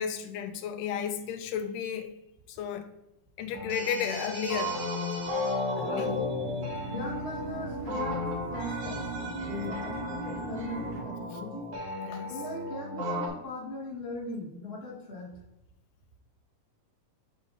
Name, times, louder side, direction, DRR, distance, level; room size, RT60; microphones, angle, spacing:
voice 1, 0.0-2.1 2.5-2.9 3.4-4.8 5.8-6.1 9.7-9.8 12.1-12.3, left 8 dB, 85° left, 2.1 m, -33 dB
sound 1, 3.5-13.3, left 1 dB, 60° right, 1.8 m, -34 dB
voice 2, 5.7-6.2 6.9-11.7 12.3-15.4, left 2 dB, 55° left, 0.6 m, -39 dB
sound 2, 6.0-11.0, right 3 dB, 85° right, 3.0 m, -40 dB
7.1 x 2.5 x 5.3 m
omnidirectional pair, 3.6 m